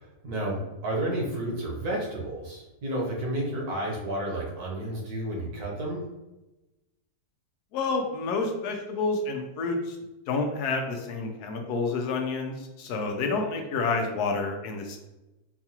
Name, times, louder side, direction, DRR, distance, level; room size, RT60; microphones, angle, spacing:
voice 1, 0.0-6.0, right 1 dB, 70° right, -3 dB, 1.5 m, -31 dB
voice 2, 7.7-10.0 10.3-15.0, left 3 dB, 75° left, 3 dB, 1.1 m, -29 dB
4.7 x 2.3 x 2.8 m, 1.0 s
omnidirectional pair, 1.7 m